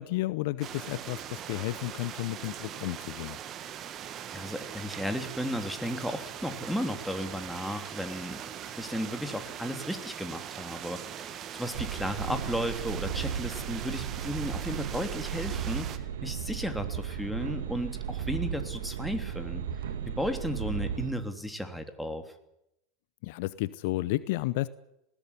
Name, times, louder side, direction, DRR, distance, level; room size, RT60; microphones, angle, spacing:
voice 1, 0.0-3.4 23.2-24.7, left 18 dB, 60° left, 18 dB, 0.7 m, -32 dB
sound 1, 0.6-16.0, right 9 dB, 40° right, 1.9 m, -41 dB
voice 2, 4.3-8.4 8.8-15.9 16.2-19.6 20.1-22.3, equal, ahead, 6 dB, 3.2 m, -34 dB
sound 2, 11.7-21.1, right 8 dB, 70° right, 1.8 m, -35 dB
20.0 x 16.5 x 9.8 m, 0.83 s
figure-of-eight pair, 85°, 0 cm